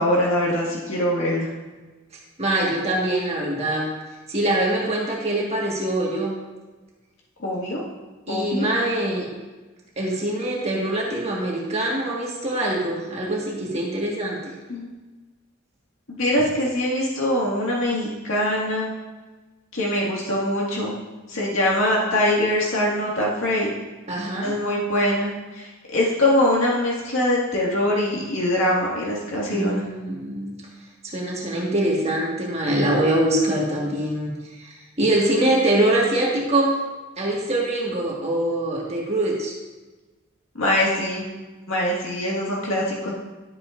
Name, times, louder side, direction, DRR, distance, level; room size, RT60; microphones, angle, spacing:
voice 1, 0.0-1.5 7.4-7.8 8.3-8.7 14.7-14.9 16.1-18.9 19.7-21.0 21.3-23.7 24.4-29.8 40.6-41.2 41.7-43.1, left 1 dB, 85° left, -5 dB, 2.0 m, -23 dB
voice 2, 2.4-3.9 4.3-6.3 8.3-9.3 10.0-14.5 24.1-24.6 29.5-30.6 31.0-36.8 37.2-39.5, right 1 dB, 35° right, -3 dB, 1.6 m, -24 dB
12.0 x 8.5 x 2.6 m, 1.2 s
head